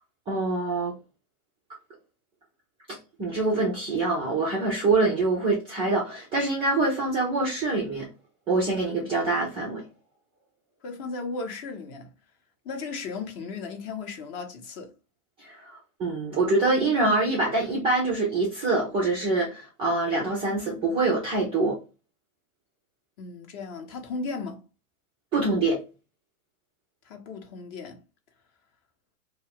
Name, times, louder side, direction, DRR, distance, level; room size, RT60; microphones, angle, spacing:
voice 1, 0.3-0.9 2.9-8.1 8.5-9.8 15.4-21.8 25.3-25.8, right 3 dB, 15° right, 0.3 m, -25 dB
voice 2, 10.8-12.1 12.6-14.9 23.2-24.6 27.0-28.0, left 4 dB, 35° left, 0.7 m, -36 dB
2.3 x 2.3 x 3.3 m
hypercardioid pair, 115°, 46 cm